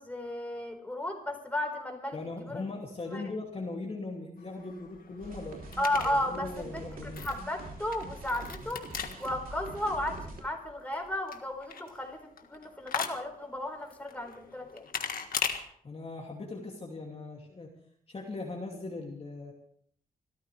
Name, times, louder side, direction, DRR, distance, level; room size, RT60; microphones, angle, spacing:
voice 1, 0.0-2.6 3.0-3.2 5.8-8.8 9.2-14.8, left 1 dB, 10° left, 2 dB, 4.4 m, -34 dB
voice 2, 2.1-5.6 6.0-7.2 15.8-17.7 18.1-19.5, left 3 dB, 40° left, -1 dB, 2.6 m, -39 dB
sound 1, 4.4-15.6, left 6 dB, 75° left, 1.6 m, -40 dB
sound 2, 5.2-10.4, right 2 dB, 80° right, 3.2 m, -44 dB
26.0 x 13.5 x 3.4 m, 0.63 s
wide cardioid pair, 100°, 15 cm